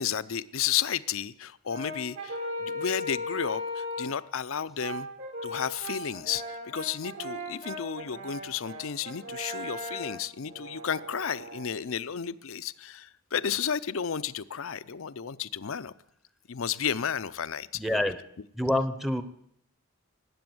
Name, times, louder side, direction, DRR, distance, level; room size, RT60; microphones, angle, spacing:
voice 1, 0.0-5.1 5.4-15.9 16.5-18.0, left 8 dB, 70° left, 16 dB, 0.6 m, -32 dB
Brass instrument, 1.7-4.2 4.8-11.7, left 1 dB, 70° right, 3.9 m, -38 dB
voice 2, 17.8-18.2 18.6-19.2, left 1 dB, ahead, 10 dB, 0.8 m, -26 dB
19.5 x 8.6 x 7.8 m, 0.72 s
head